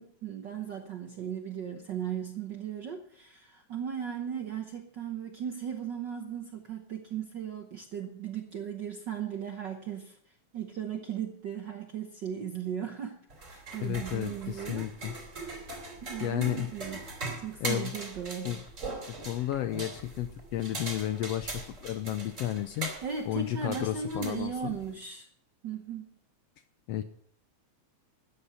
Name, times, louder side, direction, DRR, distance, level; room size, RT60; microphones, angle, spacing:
voice 1, 0.0-10.2 10.5-14.9 16.1-17.0 17.4-18.6 22.8-25.3 25.6-26.2, right 8 dB, 65° right, 4 dB, 1.1 m, -37 dB
sound 1, 13.3-24.9, right 3 dB, 25° right, 2.9 m, -41 dB
voice 2, 13.8-15.1 16.2-16.7 17.6-17.9 18.4-18.6 19.1-22.9 23.3-24.7 26.9-27.0, left 12 dB, 75° left, 11 dB, 1.5 m, -32 dB
13.5 x 9.6 x 5.6 m, 0.66 s
omnidirectional pair, 3.4 m